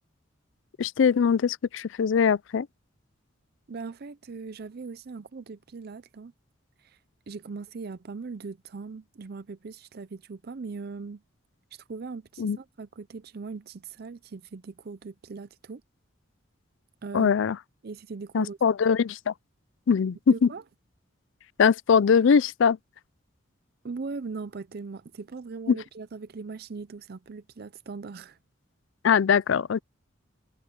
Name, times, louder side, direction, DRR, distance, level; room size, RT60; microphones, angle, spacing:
voice 1, 0.8-2.7 12.4-12.6 17.1-17.6 18.3-19.3 19.9-20.5 21.6-22.8 25.7-25.8 29.0-29.8, left 6 dB, 70° left, 0.4 m, -22 dB
voice 2, 3.7-6.3 6.8-7.0 7.3-11.2 11.7-15.8 17.0-17.4 17.8-18.6 20.3-20.6 23.8-28.4, right 4 dB, 50° right, 0.5 m, -39 dB
head